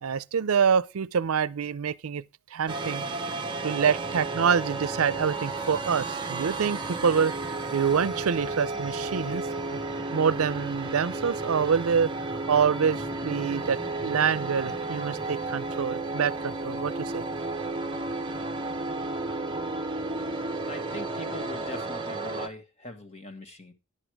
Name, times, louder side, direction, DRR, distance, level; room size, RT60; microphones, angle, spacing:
voice 1, 0.0-2.2 2.5-3.0 3.6-7.3 7.7-9.8 10.1-17.2, right 6 dB, 85° right, 0.5 m, -26 dB
sound 1, 2.7-22.5, right 3 dB, 20° right, 0.9 m, -33 dB
voice 2, 20.6-23.7, left 1 dB, 30° left, 1.6 m, -41 dB
11.0 x 8.1 x 4.7 m
head